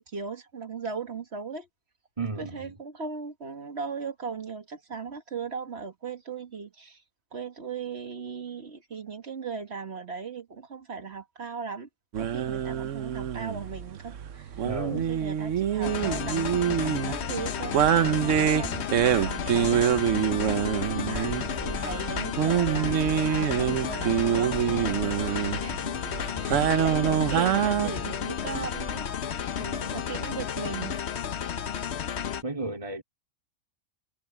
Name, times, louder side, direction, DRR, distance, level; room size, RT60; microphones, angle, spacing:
voice 1, 0.0-1.7 2.4-7.0 7.3-11.9 12.2-14.6 15.0-19.9 21.0-25.9 26.3-29.5 29.9-31.0, right 5 dB, 60° right, 1.9 m, -38 dB
voice 2, 2.2-2.7 14.6-15.1 20.7-21.2 29.6-30.0 32.4-33.0, right 3 dB, 25° right, 2.9 m, -35 dB
sound 1, 12.1-27.9, right 9 dB, 85° right, 1.2 m, -26 dB
sound 2, 15.8-32.4, left 8 dB, 65° left, 1.1 m, -32 dB
sound 3, 17.8-29.9, left 1 dB, 15° left, 2.6 m, -45 dB
omnidirectional pair, 1.3 m